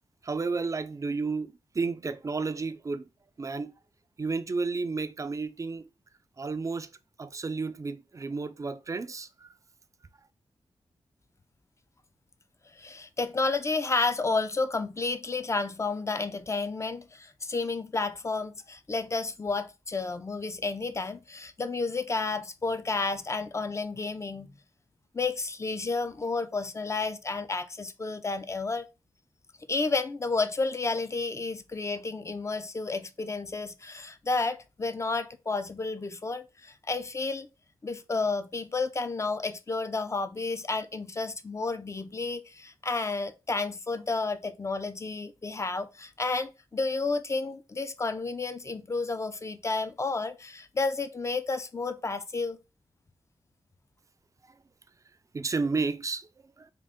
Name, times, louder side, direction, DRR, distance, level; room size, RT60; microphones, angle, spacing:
voice 1, 0.2-3.1 3.4-3.7 4.2-5.9 6.4-6.9 7.2-9.5 55.3-56.7, right 4 dB, 35° right, 0.4 m, -32 dB
voice 2, 12.7-24.5 25.1-28.9 29.7-37.5 37.8-52.6, left 3 dB, 30° left, 0.5 m, -31 dB
3.7 x 2.4 x 3.5 m
cardioid pair, 65°, 10 cm